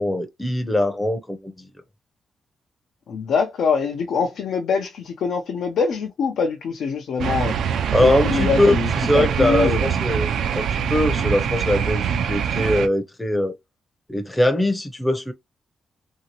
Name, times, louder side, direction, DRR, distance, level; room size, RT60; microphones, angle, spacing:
voice 1, 0.0-1.5 7.9-13.6 14.1-15.3, left 1 dB, 10° left, 0.5 m, -21 dB
voice 2, 3.1-7.5 8.0-9.9, left 5 dB, 80° left, 0.5 m, -24 dB
sound 1, 7.2-12.9, right 8 dB, 85° right, 0.4 m, -23 dB
2.8 x 2.7 x 2.8 m
cardioid pair, 80°, 0 cm